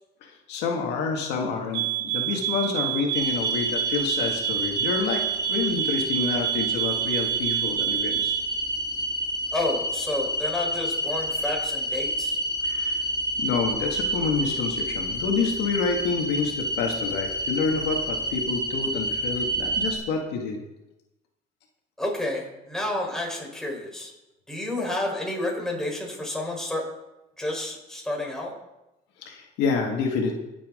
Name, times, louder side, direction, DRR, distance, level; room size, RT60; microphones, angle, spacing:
voice 1, 0.2-8.3 12.6-13.0 13.4-20.6 29.2-30.3, left 5 dB, 90° left, 2 dB, 1.9 m, -28 dB
sound 1, 1.7-8.5, right 15 dB, 85° right, 0.9 m, -28 dB
sound 2, 3.1-20.0, right 1 dB, 25° right, 2.3 m, -29 dB
voice 2, 9.5-12.4 22.0-24.1 24.5-26.8 27.4-28.5, left 1 dB, 5° left, -2 dB, 4.2 m, -30 dB
21.5 x 7.4 x 3.8 m, 0.96 s
cardioid pair, 110°, 17 cm